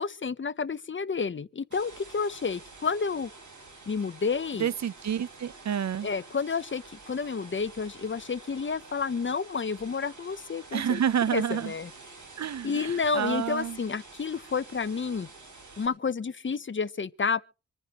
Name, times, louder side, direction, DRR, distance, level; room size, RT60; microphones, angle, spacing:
voice 1, 0.0-3.3 3.9-4.7 6.0-11.0 11.3-11.9 12.6-15.3 15.8-17.4, left 5 dB, 40° left, 0.7 m, -30 dB
sound 1, 1.7-15.9, right 3 dB, 85° right, 7.1 m, -49 dB
voice 2, 4.6-6.1 10.7-11.7 12.4-13.8, right 9 dB, 65° right, 0.6 m, -29 dB
26.0 x 9.9 x 3.0 m
wide cardioid pair, 75°, 29 cm